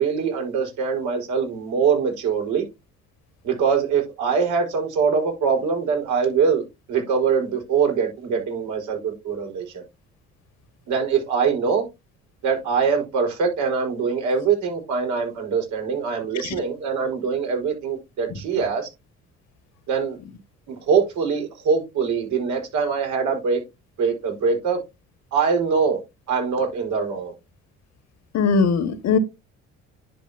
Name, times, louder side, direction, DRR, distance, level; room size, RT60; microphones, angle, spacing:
voice 1, 0.0-2.6 3.4-9.8 10.9-11.9 12.4-18.9 19.9-20.2 20.7-23.6 24.0-24.8 25.3-26.0 26.3-27.3, right 6 dB, 70° right, 4.8 m, -23 dB
voice 2, 28.3-29.2, left 5 dB, 60° left, 1.7 m, -20 dB
10.0 x 7.0 x 2.8 m
hypercardioid pair, 60°, 31 cm